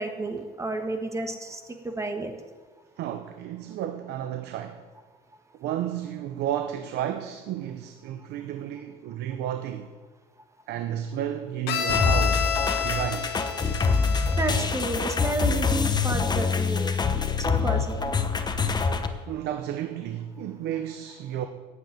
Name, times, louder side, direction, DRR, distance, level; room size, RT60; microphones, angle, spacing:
voice 1, 0.0-1.6 1.8-2.3 14.4-16.9 17.4-18.1, right 2 dB, 15° right, 1.6 m, -31 dB
voice 2, 3.0-4.8 5.6-9.9 10.7-13.3 19.3-21.5, right 10 dB, 80° right, 0.8 m, -32 dB
Bowed string instrument, 11.7-15.4, left 8 dB, 80° left, 1.4 m, -30 dB
sound 1, 11.9-19.1, left 5 dB, 25° left, 1.0 m, -25 dB
8.9 x 8.4 x 9.3 m
cardioid pair, 110°, 17 cm